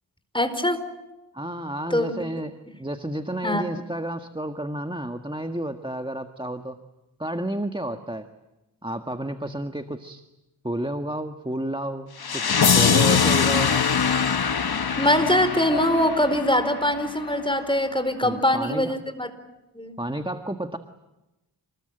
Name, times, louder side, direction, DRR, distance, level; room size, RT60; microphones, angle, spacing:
voice 1, 0.3-0.8 1.9-2.1 3.4-3.6 15.0-19.3 19.7-20.0, left 1 dB, 10° left, 10 dB, 4.6 m, -22 dB
voice 2, 1.3-2.5 2.8-6.8 7.2-8.3 8.8-10.2 10.6-13.7 18.2-18.9 20.0-20.8, right 1 dB, 10° right, 7 dB, 1.6 m, -31 dB
sound 1, 12.2-17.2, left 6 dB, 60° left, 1.1 m, -22 dB
28.0 x 21.0 x 9.0 m, 0.97 s
cardioid pair, 45°, 41 cm